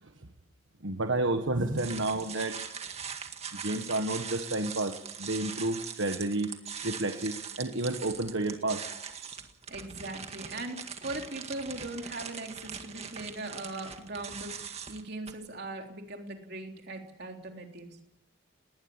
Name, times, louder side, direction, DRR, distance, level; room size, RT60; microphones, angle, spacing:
voice 1, 0.8-3.0 3.5-6.5 6.8-8.9, right 2 dB, 75° right, 6 dB, 1.5 m, -31 dB
sound 1, 1.8-15.3, right 7 dB, 30° right, 1.9 m, -41 dB
voice 2, 9.7-18.0, right 2 dB, 55° right, 3 dB, 3.6 m, -40 dB
20.0 x 19.5 x 8.9 m, 0.79 s
head